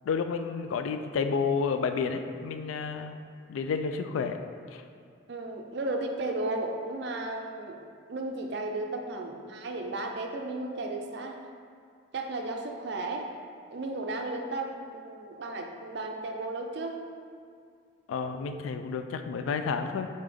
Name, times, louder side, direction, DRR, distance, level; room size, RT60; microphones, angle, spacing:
voice 1, 0.0-3.2 3.5-4.4 4.7-4.8 18.1-20.1, left 5 dB, 85° left, 9 dB, 0.3 m, -30 dB
voice 2, 5.3-7.8 8.1-11.4 12.1-13.3 13.7-17.0, right 2 dB, 55° right, 3 dB, 0.4 m, -34 dB
4.1 x 3.7 x 3.4 m, 2.3 s
head